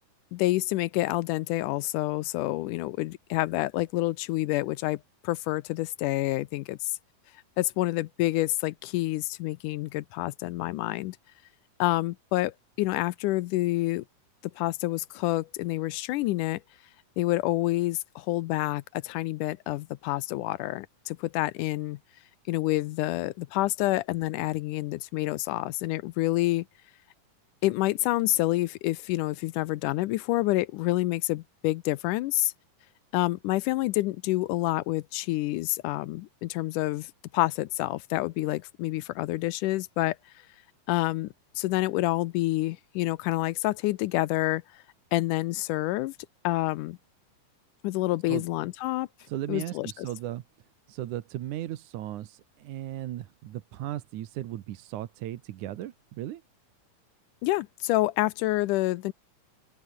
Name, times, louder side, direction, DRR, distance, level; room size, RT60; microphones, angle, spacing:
voice 1, 0.3-6.9 7.6-11.2 11.8-14.0 14.6-16.6 17.2-22.0 22.5-26.7 27.6-32.5 33.1-40.2 40.9-41.3 41.6-44.6 45.1-46.1 46.4-47.0 47.8-49.1 49.5-50.1 57.4-59.1, left 18 dB, 80° left, 2.1 m, -28 dB
voice 2, 49.2-50.4 50.9-56.4, right 13 dB, 70° right, 2.4 m, -36 dB
open air
omnidirectional pair, 3.9 m